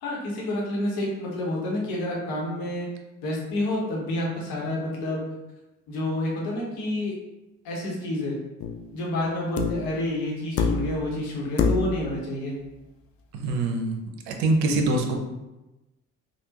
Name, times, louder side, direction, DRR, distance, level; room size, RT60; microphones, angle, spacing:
voice 1, 0.0-2.9 3.2-5.2 5.9-7.1 7.6-8.4 8.9-12.5, left 1 dB, 60° left, -3 dB, 1.1 m, -29 dB
sound 1, 8.6-8.9 9.6-9.9 10.6-11.1 11.6-12.1 13.5-13.6, left 4 dB, 35° left, 0.4 m, -25 dB
voice 2, 13.3-14.0 14.3-15.2, right 2 dB, 65° right, 3 dB, 0.6 m, -24 dB
3.4 x 2.3 x 2.9 m, 1.0 s
hypercardioid pair, 55°, 41 cm